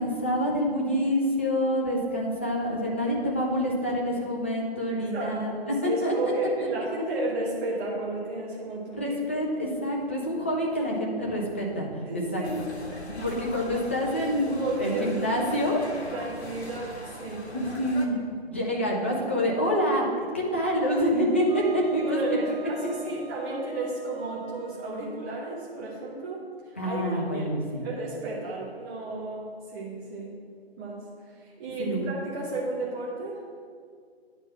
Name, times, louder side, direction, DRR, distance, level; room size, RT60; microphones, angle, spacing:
voice 1, 0.0-6.1 8.9-12.4 13.0-15.8 17.5-18.2 18.5-20.1 20.3-22.4 26.8-27.9 31.8-32.1, equal, 10° left, -3 dB, 0.4 m, -27 dB
voice 2, 4.9-9.1 12.0-12.6 14.5-15.5 16.1-17.4 22.0-27.0 27.3-27.6 27.8-30.3 30.8-33.4, right 2 dB, 15° right, -6 dB, 0.8 m, -33 dB
sound 1, 12.4-18.1, left 1 dB, 85° left, 1.4 m, -41 dB
Wind instrument woodwind instrument, 21.5-25.8, right 2 dB, 40° right, 2.2 m, -44 dB
9.5 x 4.5 x 5.7 m, 2.1 s
figure-of-eight pair, 140°, 32 cm